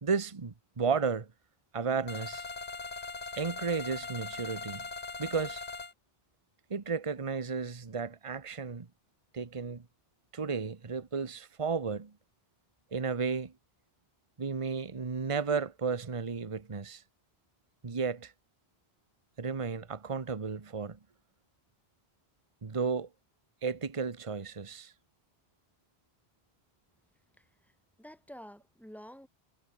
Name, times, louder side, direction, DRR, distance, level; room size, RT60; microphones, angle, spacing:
voice 1, 0.0-1.3 1.7-2.4 3.4-4.9 5.2-5.6 6.7-8.9 9.3-9.8 10.3-12.1 12.9-13.5 14.4-17.0 17.8-18.3 19.4-21.0 22.6-23.1 23.6-24.9, right 5 dB, 30° right, 1.1 m, -33 dB
sound 1, 2.1-5.9, left 4 dB, 40° left, 1.6 m, -40 dB
voice 2, 27.4-29.3, equal, ahead, 7.4 m, -50 dB
omnidirectional pair, 1.1 m